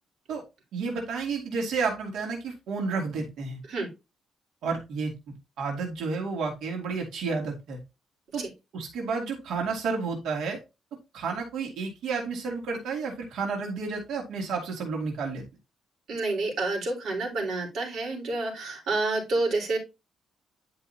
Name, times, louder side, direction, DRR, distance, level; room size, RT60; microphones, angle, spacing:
voice 1, 0.7-3.6 4.6-5.1 5.6-7.8 8.3-8.4 8.7-10.6 11.1-15.4, right 4 dB, 80° right, 0 dB, 2.5 m, -31 dB
voice 2, 16.1-19.8, right 2 dB, 60° right, -1 dB, 4.3 m, -29 dB
10.5 x 5.4 x 2.9 m, 0.26 s
cardioid pair, 140°, 0 cm